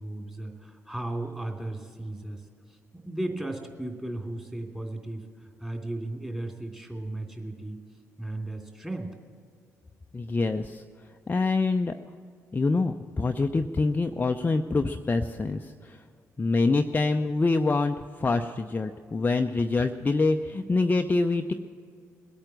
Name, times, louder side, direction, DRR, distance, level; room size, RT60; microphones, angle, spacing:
voice 1, 0.0-7.8 8.2-9.1, right 1 dB, 10° right, 1 dB, 3.0 m, -35 dB
voice 2, 10.1-10.8 11.3-11.9 12.5-16.0 16.4-21.5, left 3 dB, 20° left, 6 dB, 0.6 m, -25 dB
21.0 x 8.9 x 7.2 m, 2.2 s
figure-of-eight pair, 45°, 8 cm